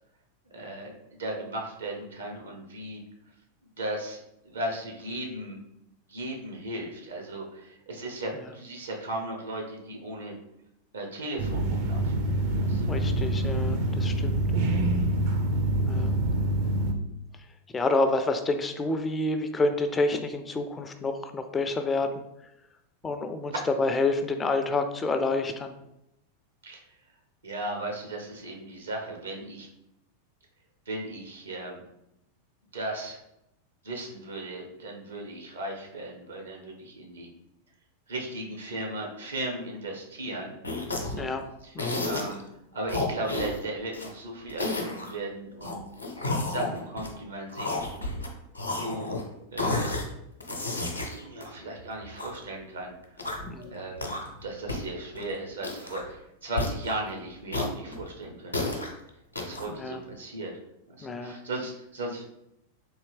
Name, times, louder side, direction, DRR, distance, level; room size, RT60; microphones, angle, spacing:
voice 1, 0.5-3.0 3.8-5.6 6.1-10.3 10.9-12.1 12.6-12.9 23.5-23.6 26.6-26.9 27.4-29.7 30.9-31.8 32.7-33.2 33.8-37.3 38.1-40.6 40.9-41.3 41.6-41.7 42.0-42.4 42.7-45.8 46.4-47.8 48.6-49.2 49.5-50.0 51.1-53.3 53.6-54.2 54.4-58.8 59.4-60.5 60.9-62.2, right 1 dB, 70° right, 1 dB, 0.8 m, -36 dB
sound 1, 11.4-16.9, right 1 dB, 45° right, 0.5 m, -26 dB
voice 2, 12.9-14.4 15.8-16.1 17.7-22.1 23.0-23.5 23.8-25.7 41.1-41.5 41.7-42.0 53.5-53.7 59.8-60.0 61.0-61.4, left 3 dB, 15° left, 7 dB, 0.3 m, -28 dB
sound 2, 40.6-41.2 41.8-42.4 42.9-44.1 44.5-45.1 45.6-47.2 47.5-48.3 48.6-49.2 49.6-50.0 50.4-52.4 53.0-53.5 54.0-54.4 54.7-54.8 55.1-55.2 55.6-56.1 56.6-56.9 57.5-58.9 59.4-59.6, left 2 dB, 85° left, 0.6 m, -31 dB
3.7 x 2.6 x 3.4 m, 0.83 s
figure-of-eight pair, 90°, 0 cm